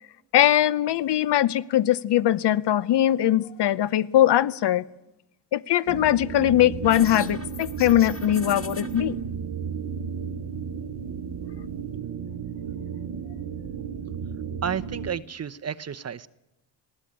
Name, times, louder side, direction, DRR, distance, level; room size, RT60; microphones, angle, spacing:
voice 1, 0.3-4.8 5.5-9.2, left 12 dB, 55° left, 17 dB, 0.8 m, -21 dB
sound 1, 5.9-15.1, right 6 dB, 55° right, 1.3 m, -34 dB
sound 2, 6.8-9.0, left 3 dB, 25° left, 2.0 m, -40 dB
voice 2, 14.6-16.3, right 8 dB, 30° right, 13 dB, 0.8 m, -31 dB
19.5 x 16.0 x 8.7 m, 0.92 s
cardioid pair, 90°, 49 cm